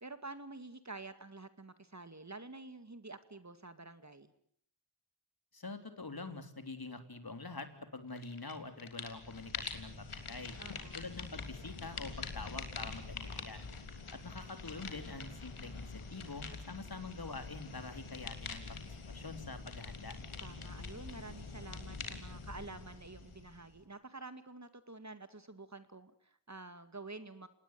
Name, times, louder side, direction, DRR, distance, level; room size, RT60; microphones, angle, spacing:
voice 1, 0.0-4.3 10.6-11.0 20.4-27.5, right 3 dB, 35° right, 11 dB, 2.2 m, -49 dB
voice 2, 5.5-10.6 10.9-13.6 14.1-20.2, left 3 dB, 45° left, 8 dB, 3.6 m, -46 dB
sound 1, 8.2-8.5 8.8-23.8, left 4 dB, 75° left, 3.5 m, -45 dB
26.5 x 19.5 x 9.4 m, 0.65 s
cardioid pair, 45°, 50 cm